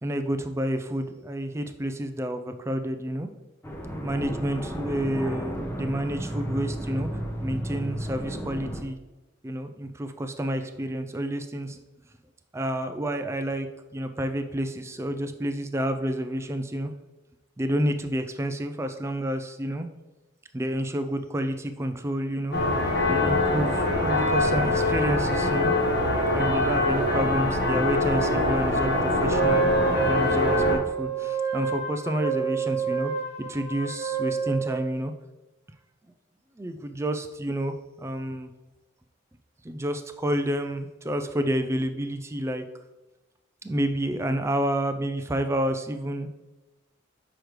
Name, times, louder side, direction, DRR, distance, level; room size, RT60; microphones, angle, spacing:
voice 1, 0.0-3.3 3.9-9.0 9.4-11.8 12.5-16.9 17.6-19.9 20.5-22.6 23.1-25.7 26.3-33.1 33.4-35.1 36.6-38.5 39.6-42.6 43.6-46.3, right 1 dB, 15° right, 7 dB, 0.3 m, -29 dB
sound 1, 3.6-8.8, equal, 10° left, 0.8 m, -33 dB
sound 2, 22.5-30.8, left 2 dB, 55° left, 1.5 m, -24 dB
Wind instrument woodwind instrument, 29.3-34.9, right 5 dB, 30° left, 1.4 m, -28 dB
6.4 x 5.0 x 3.1 m, 1.1 s
head